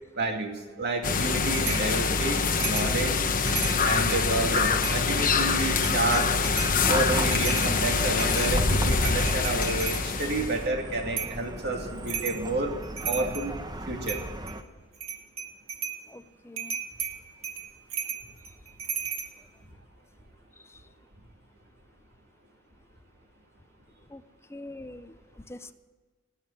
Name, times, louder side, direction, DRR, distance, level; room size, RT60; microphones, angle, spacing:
voice 1, 0.1-3.2 3.8-6.3 6.9-12.7 13.1-13.6 13.9-14.2, right 2 dB, 55° right, 2 dB, 2.6 m, -30 dB
sound 1, 1.0-10.7, left 4 dB, 40° left, 1.1 m, -25 dB
sound 2, 1.7-1.9 2.6-2.9 3.3-4.3 4.8-5.3 5.7-6.8 7.1-10.0 11.2-11.4 12.1-12.4 12.8-13.5 14.0-14.6 14.9-16.0 16.6-19.3, right 7 dB, 80° right, 2.3 m, -35 dB
Chatter / Car passing by / Traffic noise roadway noise, 6.5-14.6, right 1 dB, 20° right, 1.0 m, -36 dB
voice 2, 16.1-16.7 24.1-24.2 24.5-25.1 25.5-25.7, left 1 dB, 15° left, 11 dB, 0.6 m, -43 dB
19.0 x 7.2 x 9.4 m, 1.3 s
head